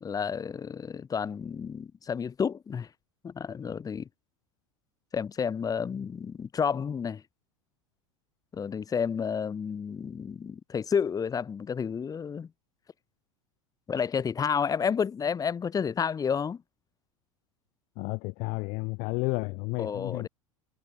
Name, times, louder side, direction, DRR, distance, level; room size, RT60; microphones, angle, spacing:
voice 1, 0.0-2.9 3.2-4.1 5.1-7.2 8.5-12.5 13.9-16.6 19.8-20.3, left 6 dB, 20° left, 1.5 m, -30 dB
voice 2, 18.0-20.3, left 29 dB, 45° left, 0.7 m, -32 dB
figure-of-eight pair, 80°, 17 cm